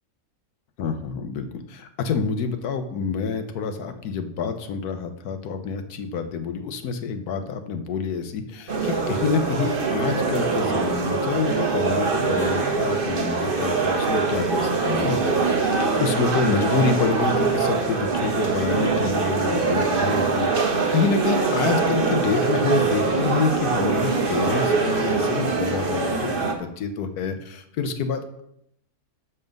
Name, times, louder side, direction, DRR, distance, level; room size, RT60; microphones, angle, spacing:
voice 1, 0.8-15.2 16.0-28.4, left 5 dB, 75° left, 8 dB, 1.3 m, -27 dB
sound 1, 8.7-26.5, right 4 dB, 40° right, 1.1 m, -23 dB
7.0 x 5.6 x 5.2 m, 0.75 s
omnidirectional pair, 1.7 m